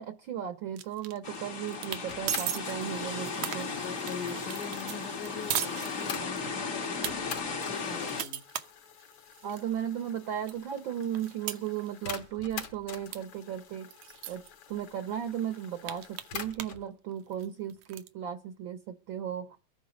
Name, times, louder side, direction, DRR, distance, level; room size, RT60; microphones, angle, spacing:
voice 1, 0.0-3.7 9.4-13.9 14.3-14.4 14.7-19.6, right 9 dB, 60° right, 10 dB, 1.3 m, -36 dB
sound 1, 0.8-1.4 1.7-2.0 2.3-2.6 3.0-6.4 6.8-7.1 7.6-9.6 10.1-10.2 10.5-12.3 12.5-12.8 13.1-13.2 13.4-13.5 13.9-14.5 15.1-15.2 15.4-16.8 17.1-18.1, right 11 dB, 85° right, 2.4 m, -37 dB
sound 2, 1.2-8.2, left 4 dB, 40° left, 1.2 m, -36 dB
sound 3, 2.1-6.6 7.1-16.8, left 7 dB, 55° left, 2.2 m, -46 dB
voice 2, 3.7-8.4, left 7 dB, 75° left, -1 dB, 3.0 m, -42 dB
23.0 x 9.4 x 5.2 m, 0.36 s
omnidirectional pair, 3.3 m